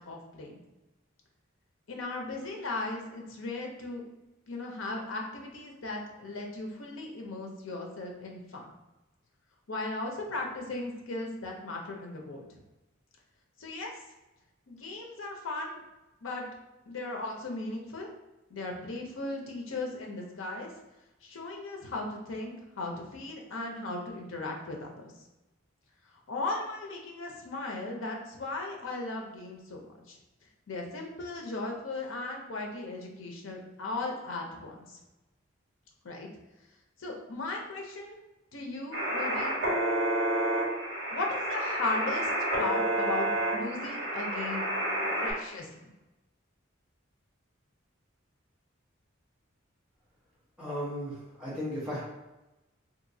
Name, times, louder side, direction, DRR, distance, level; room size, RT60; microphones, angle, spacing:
voice 1, 0.1-0.6 1.9-4.0 4.5-8.6 9.7-12.6 13.6-13.9 14.7-15.8 16.2-16.5 16.9-18.1 18.5-20.7 21.2-25.1 26.3-30.2 30.7-35.0 36.0-36.3 37.0-38.2 38.5-39.6 41.1-42.3 42.6-44.7 45.2-45.7, left 2 dB, 75° left, 0 dB, 0.6 m, -37 dB
sound 1, 38.9-45.3, right 1 dB, 60° right, 1.4 m, -30 dB
voice 2, 50.6-52.0, equal, 5° right, -10 dB, 0.9 m, -35 dB
2.9 x 2.6 x 2.7 m, 1.0 s
head